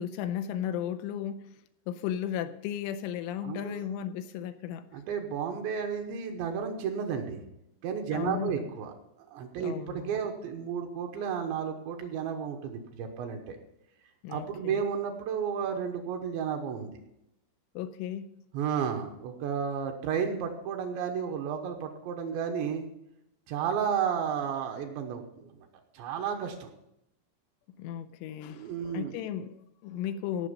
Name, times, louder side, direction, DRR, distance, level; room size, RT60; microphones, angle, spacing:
voice 1, 0.0-1.5 1.9-4.9 8.1-8.7 9.6-10.1 14.2-14.8 17.8-18.3 27.8-30.5, left 10 dB, 85° left, 11 dB, 3.0 m, -35 dB
voice 2, 3.4-4.0 4.9-7.4 7.8-8.9 9.3-13.6 14.3-16.9 18.5-22.9 23.5-25.7 25.9-26.7 28.4-29.2, right 7 dB, 75° right, 4 dB, 3.0 m, -32 dB
17.5 x 6.5 x 5.1 m, 0.82 s
omnidirectional pair, 5.8 m